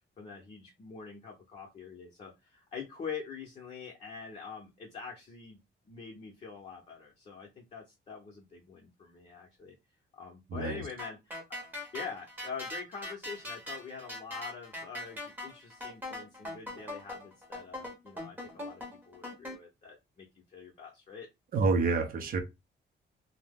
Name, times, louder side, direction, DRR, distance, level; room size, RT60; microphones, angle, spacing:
voice 1, 0.2-5.6 5.9-9.8 10.1-11.6 11.9-21.3, left 5 dB, 35° left, 0.7 m, -45 dB
voice 2, 10.5-10.8 21.5-22.4, right 4 dB, 50° right, 0.5 m, -28 dB
sound 1, 11.0-19.6, left 1 dB, 10° right, 0.7 m, -41 dB
2.7 x 2.0 x 3.4 m
wide cardioid pair, 175°, 19 cm